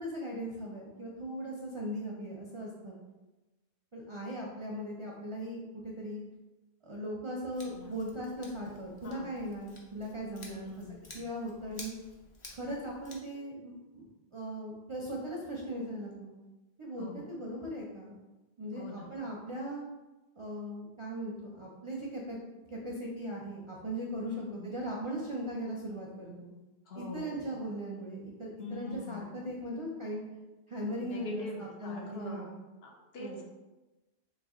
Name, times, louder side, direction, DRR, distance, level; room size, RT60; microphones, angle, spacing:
voice 1, 0.0-3.0 3.9-6.2 6.8-10.7 11.1-11.9 12.5-14.1 14.3-16.3 16.8-18.1 18.6-19.8 20.3-22.4 22.7-26.5 26.9-30.2 30.7-32.5 33.2-33.4, equal, 40° right, -3 dB, 0.4 m, -39 dB
Scissors, 7.5-13.2, left 2 dB, 35° left, 0.6 m, -52 dB
voice 2, 7.6-8.0 9.0-9.3 10.4-11.3 17.0-17.2 18.7-19.1 24.2-24.7 26.9-27.5 28.6-29.4 31.0-32.5 32.8-33.4, left 2 dB, 70° left, 0 dB, 1.0 m, -43 dB
3.2 x 2.9 x 3.6 m, 1.1 s
omnidirectional pair, 1.1 m